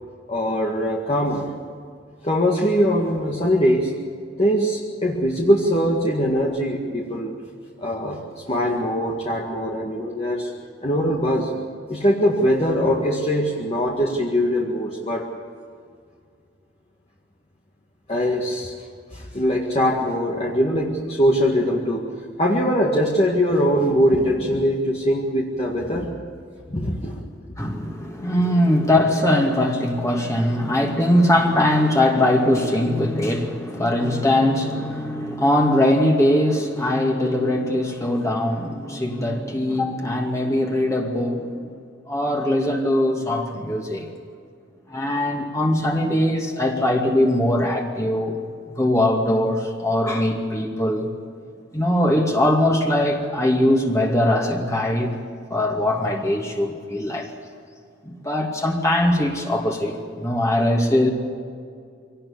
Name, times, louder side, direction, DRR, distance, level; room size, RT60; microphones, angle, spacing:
voice 1, 0.3-1.5 2.2-3.9 4.4-7.4 7.8-10.5 10.8-11.5 11.9-15.3 18.1-18.7 19.1-22.1 22.4-26.1 26.7-27.2, equal, 35° left, -2 dB, 2.0 m, -22 dB
voice 2, 27.6-41.7 42.1-44.1 44.9-48.4 48.8-51.1 51.7-55.1 55.5-57.3 58.1-61.1, left 1 dB, 15° left, 1 dB, 2.4 m, -21 dB
24.5 x 18.5 x 7.2 m, 2.2 s
head